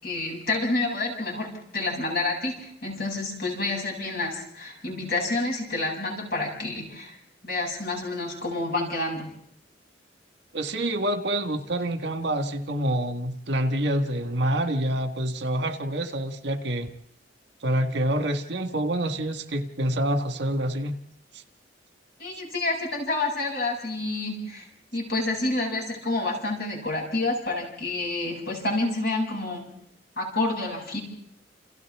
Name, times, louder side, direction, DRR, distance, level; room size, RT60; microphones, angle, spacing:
voice 1, 0.0-7.2 7.4-9.3 22.2-24.7 24.9-29.7 30.2-31.0, left 2 dB, 60° left, -1 dB, 7.8 m, -28 dB
voice 2, 10.5-16.9 17.6-21.0 21.3-21.4, right 1 dB, 65° right, 6 dB, 1.8 m, -27 dB
30.0 x 29.5 x 3.7 m, 0.73 s
head